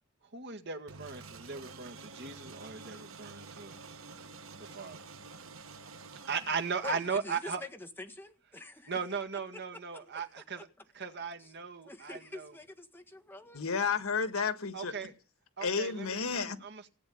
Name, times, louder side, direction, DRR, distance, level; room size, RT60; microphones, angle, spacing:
voice 1, 0.3-3.8 4.6-5.0 6.3-7.6 8.9-10.7 10.9-12.5 14.7-15.1 15.6-16.9, right 5 dB, 55° right, 1.9 m, -38 dB
sound 1, 0.9-7.4, right 4 dB, 70° right, 1.4 m, -49 dB
voice 2, 6.8-7.7 8.0-9.0 9.9-10.3 11.4-11.5 11.8-13.6, left 2 dB, 10° left, 1.7 m, -46 dB
voice 3, 13.5-14.9 15.6-16.6, left 5 dB, 90° left, 1.6 m, -31 dB
17.0 x 8.6 x 8.7 m
head